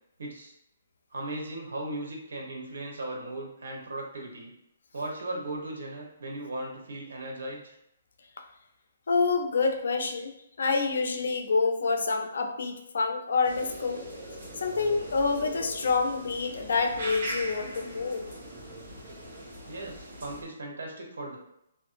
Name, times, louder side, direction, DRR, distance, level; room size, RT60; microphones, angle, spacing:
voice 1, 0.2-0.5 1.1-4.5 4.9-7.7 19.7-21.4, right 1 dB, 75° right, 0 dB, 0.9 m, -37 dB
voice 2, 9.1-10.3 10.6-14.0 14.6-18.3, left 4 dB, 70° left, 5 dB, 0.4 m, -27 dB
sound 1, 13.4-20.4, right 1 dB, 50° right, 1.0 m, -41 dB
2.8 x 2.5 x 2.5 m, 0.79 s
hypercardioid pair, 165°, 0 cm